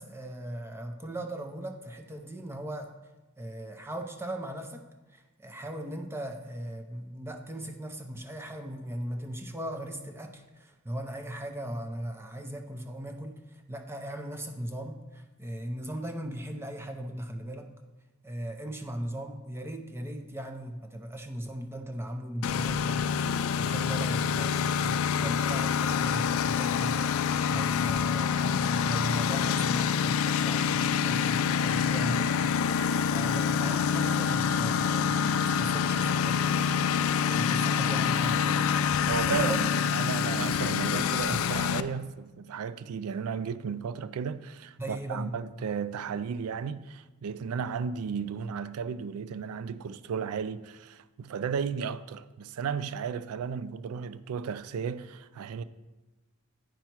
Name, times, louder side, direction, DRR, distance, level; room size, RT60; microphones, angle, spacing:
voice 1, 0.0-2.9 3.4-4.9 5.1-17.7 18.2-36.5 36.7-38.6 39.0-39.9 41.3-41.4 44.8-45.3, right 1 dB, 10° right, 0.5 m, -38 dB
Engine, 22.4-41.8, left 7 dB, 70° left, 0.3 m, -26 dB
voice 2, 39.1-55.6, right 6 dB, 80° right, 0.3 m, -34 dB
9.2 x 5.6 x 4.5 m
head